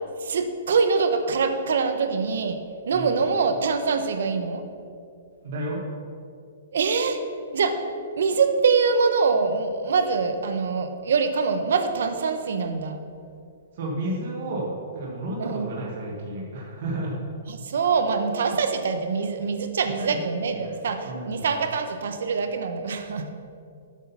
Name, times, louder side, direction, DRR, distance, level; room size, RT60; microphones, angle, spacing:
voice 1, 0.2-2.6 2.9-4.6 6.7-7.2 7.5-7.8 8.2-13.0 15.4-15.7 17.6-23.3, right 5 dB, 65° right, 7 dB, 0.9 m, -24 dB
voice 2, 5.4-5.8 13.7-17.2 19.8-20.2 20.5-21.4, right 1 dB, 45° right, -2 dB, 1.4 m, -32 dB
8.3 x 6.3 x 5.7 m, 2.4 s
hypercardioid pair, 175°, 0 cm